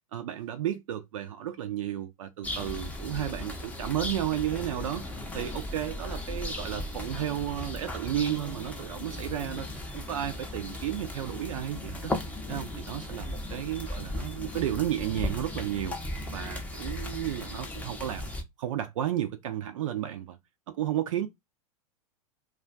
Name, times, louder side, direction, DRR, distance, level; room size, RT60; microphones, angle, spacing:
voice 1, 0.1-9.7 9.9-12.1 12.5-16.0 16.3-18.3 18.6-20.4 20.7-21.3, right 11 dB, 60° right, 0.4 m, -33 dB
sound 1, 2.4-18.4, left 1 dB, 10° left, 0.5 m, -37 dB
2.4 x 2.2 x 2.3 m
figure-of-eight pair, 95°, 19 cm